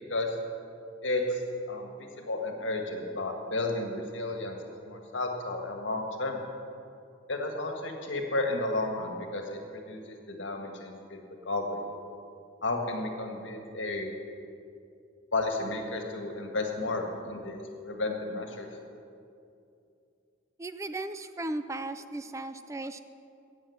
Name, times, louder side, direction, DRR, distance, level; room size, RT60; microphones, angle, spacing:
voice 1, 1.0-1.4 1.7-4.6 4.8-6.4 7.3-11.2 11.5-11.8 12.6-14.1 15.3-18.7, left 2 dB, 75° left, 3 dB, 1.8 m, -32 dB
voice 2, 20.6-23.0, right 2 dB, 15° right, 10 dB, 0.4 m, -36 dB
17.5 x 7.4 x 7.2 m, 2.6 s
head